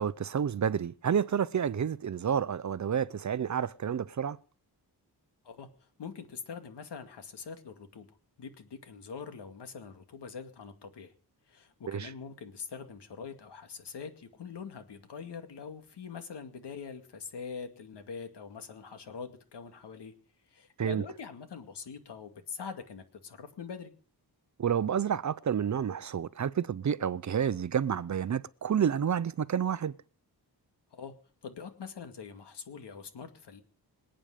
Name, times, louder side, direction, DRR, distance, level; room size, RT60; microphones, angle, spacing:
voice 1, 0.0-4.4 11.9-12.1 20.8-21.0 24.6-29.9, right 8 dB, 45° right, 0.6 m, -29 dB
voice 2, 6.0-8.1 8.4-11.1 11.5-20.1 20.5-23.9 30.9-31.1 31.4-33.6, left 6 dB, 85° left, 2.3 m, -43 dB
25.5 x 9.0 x 5.0 m
wide cardioid pair, 125°, 40 cm